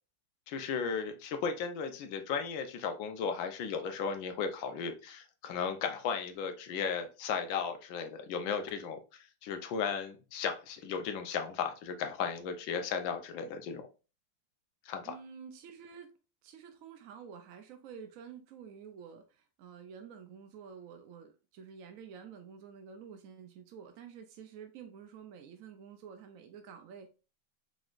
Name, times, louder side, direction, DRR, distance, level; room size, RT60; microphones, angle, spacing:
voice 1, 0.5-13.9 14.8-15.1, left 6 dB, 90° left, 1.5 m, -35 dB
voice 2, 15.0-16.1 16.4-27.1, right 7 dB, 70° right, 0.7 m, -49 dB
4.9 x 4.1 x 2.5 m
omnidirectional pair, 2.0 m